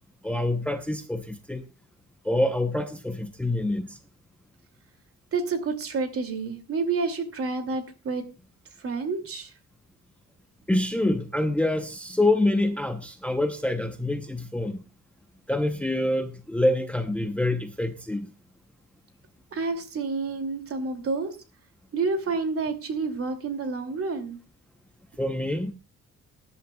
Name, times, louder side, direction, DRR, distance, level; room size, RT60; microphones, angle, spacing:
voice 1, 0.2-1.6 2.2-4.0 10.7-14.8 15.5-18.3 25.2-25.7, left 1 dB, 5° left, 0.8 m, -26 dB
voice 2, 5.3-8.2 8.8-9.5 19.5-21.4 21.9-24.4, right 4 dB, 50° right, 2.6 m, -29 dB
20.5 x 11.0 x 2.3 m
cardioid pair, 155°, 30 cm